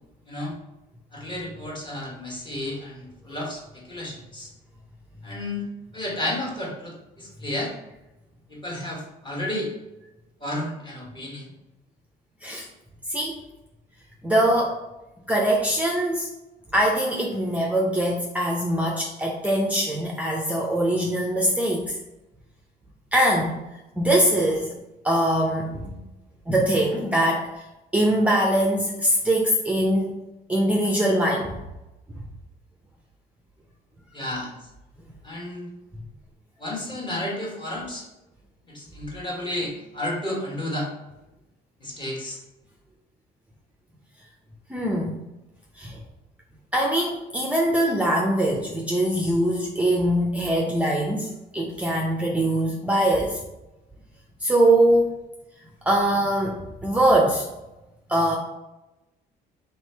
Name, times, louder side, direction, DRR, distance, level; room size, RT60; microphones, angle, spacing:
voice 1, 1.1-4.5 5.2-5.6 5.9-7.7 8.5-9.7 10.4-11.5 34.1-34.5 35.2-35.7 36.6-38.1 38.7-40.9 41.8-42.4, left 1 dB, 30° left, -2 dB, 1.3 m, -32 dB
voice 2, 14.2-14.8 15.3-16.3 16.7-22.0 23.1-23.6 24.0-24.7 25.0-26.0 26.5-27.5 27.9-30.1 30.5-31.6 44.7-45.2 45.8-46.0 46.7-53.4 54.4-55.1 55.8-57.4 58.1-58.4, right 1 dB, 10° right, -1 dB, 0.5 m, -22 dB
3.3 x 3.1 x 4.4 m, 0.98 s
cardioid pair, 110°, 17 cm